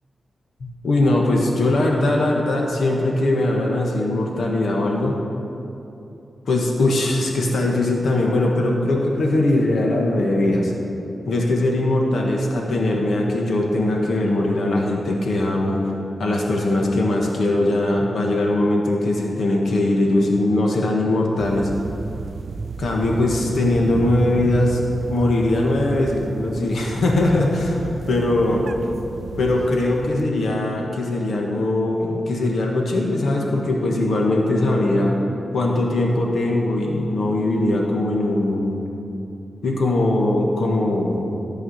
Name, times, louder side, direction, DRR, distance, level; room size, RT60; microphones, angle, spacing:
voice 1, 0.6-5.2 6.5-10.7 11.3-15.8 16.2-21.7 22.8-24.8 25.1-27.8 28.1-28.7 29.4-35.1 35.5-38.8 39.6-41.3, left 2 dB, 70° left, -1 dB, 1.4 m, -20 dB
sound 1, 21.4-30.3, right 4 dB, 60° right, 0.3 m, -32 dB
14.0 x 4.8 x 7.8 m, 2.8 s
wide cardioid pair, 140°, 0 cm